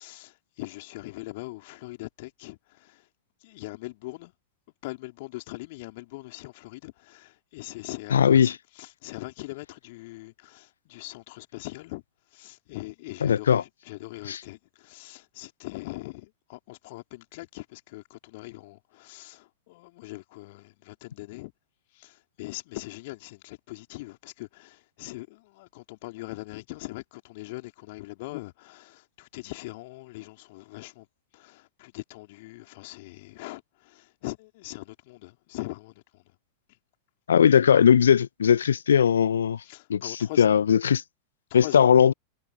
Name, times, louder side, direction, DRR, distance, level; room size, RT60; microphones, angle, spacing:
voice 1, 0.0-3.1 3.4-4.3 4.8-12.0 12.3-21.5 21.9-31.1 31.3-36.4 39.6-40.5 41.5-41.9, left 21 dB, 50° left, 3.8 m, -41 dB
voice 2, 8.1-8.5 13.2-13.6 14.3-14.4 37.3-39.6 39.9-41.0 41.5-42.1, left 8 dB, 65° left, 0.8 m, -19 dB
figure-of-eight pair, 90°, 0 cm